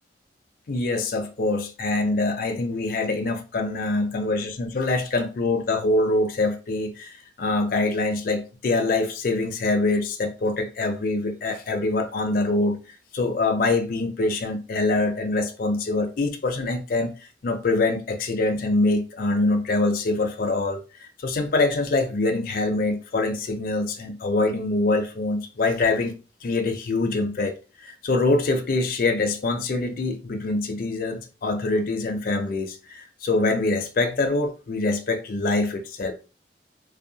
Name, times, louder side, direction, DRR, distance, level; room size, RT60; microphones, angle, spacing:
voice 1, 0.7-12.8 13.1-17.1 17.4-26.1 26.4-27.5 27.8-36.1, left 2 dB, 55° left, 0.4 m, -24 dB
2.7 x 2.0 x 2.7 m
head